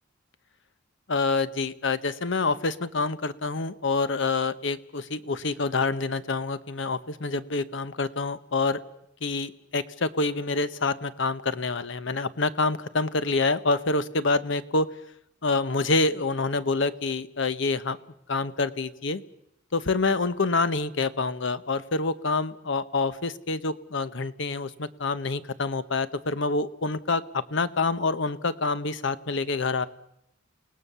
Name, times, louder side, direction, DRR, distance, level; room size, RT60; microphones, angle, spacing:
voice 1, 1.1-8.8 9.2-14.9 15.4-18.0 18.3-19.2 19.7-29.9, left 3 dB, 65° left, 14 dB, 1.0 m, -27 dB
29.0 x 18.5 x 6.9 m, 0.80 s
head